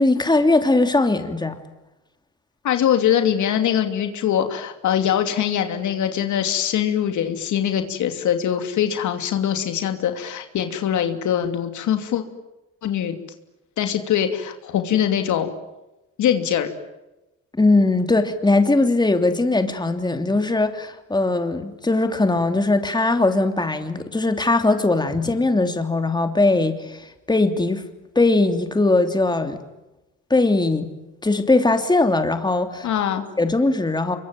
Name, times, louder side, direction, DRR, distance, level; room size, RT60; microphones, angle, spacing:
voice 1, 0.0-1.6 17.5-27.8 28.1-29.6 30.3-30.9 31.2-32.9 33.4-34.2, left 2 dB, 15° left, 7 dB, 3.0 m, -20 dB
voice 2, 2.6-12.2 12.8-13.2 13.8-15.5 16.2-16.7 32.8-33.2, left 9 dB, 75° left, 6 dB, 2.8 m, -22 dB
26.0 x 23.5 x 9.2 m, 1.0 s
cardioid pair, 90°, 30 cm